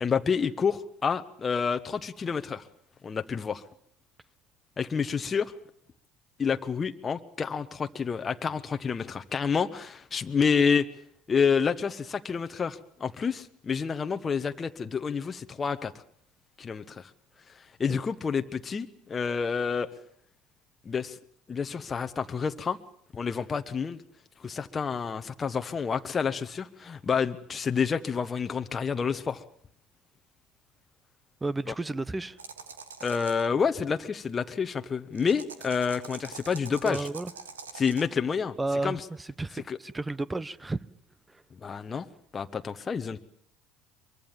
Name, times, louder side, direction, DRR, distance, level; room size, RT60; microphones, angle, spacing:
voice 1, 0.0-2.6 3.0-3.6 4.8-5.5 6.4-10.9 11.3-15.9 16.6-17.1 17.8-19.9 20.8-21.2 21.5-22.8 23.1-24.0 24.4-29.4 33.0-37.1 37.7-38.5 38.8-39.0 39.7-39.8 41.6-42.1 42.3-43.2, left 6 dB, 30° left, 1.2 m, -28 dB
voice 2, 31.4-32.4 36.8-37.3 38.6-40.8, right 2 dB, 15° right, 1.0 m, -32 dB
sound 1, 32.4-33.5 35.1-38.1, right 5 dB, 90° right, 1.6 m, -44 dB
23.5 x 23.5 x 7.4 m
hypercardioid pair, 65°, 0 cm